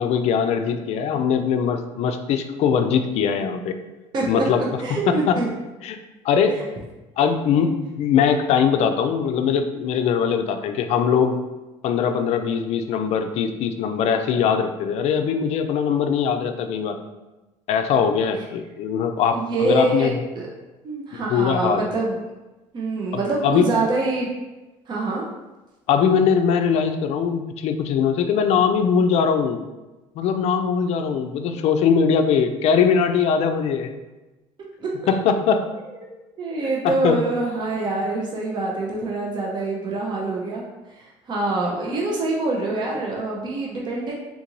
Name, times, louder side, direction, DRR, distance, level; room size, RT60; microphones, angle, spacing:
voice 1, 0.0-3.8 4.3-4.6 4.9-5.4 5.8-6.0 6.2-6.6 7.2-7.7 8.0-11.4 11.8-17.0 17.7-20.1 21.1-21.8 23.1-23.7 25.9-29.6 30.2-33.9 35.1-35.6 36.8-37.2, left 7 dB, 60° left, 7 dB, 0.4 m, -21 dB
voice 2, 4.1-5.4 6.5-6.6 7.5-7.7 19.3-20.4 20.8-22.2 22.7-24.3 24.9-25.2 34.8-34.9 36.4-40.6 41.0-44.1, right 2 dB, 40° right, -2 dB, 0.6 m, -25 dB
3.7 x 2.5 x 3.0 m, 1.1 s
cardioid pair, 110°, 12 cm